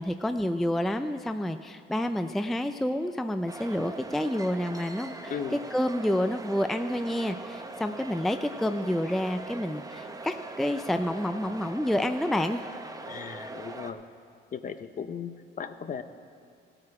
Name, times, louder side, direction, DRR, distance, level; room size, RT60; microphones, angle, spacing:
voice 1, 0.0-5.3 5.7-12.6, left 1 dB, ahead, 8 dB, 0.4 m, -29 dB
sound 1, 3.5-13.9, right 3 dB, 15° right, 0.8 m, -41 dB
voice 2, 5.3-5.6 13.1-14.0 14.5-16.0, left 7 dB, 40° left, 10 dB, 0.7 m, -37 dB
16.0 x 8.9 x 4.8 m, 2.3 s
cardioid pair, 95°, 21 cm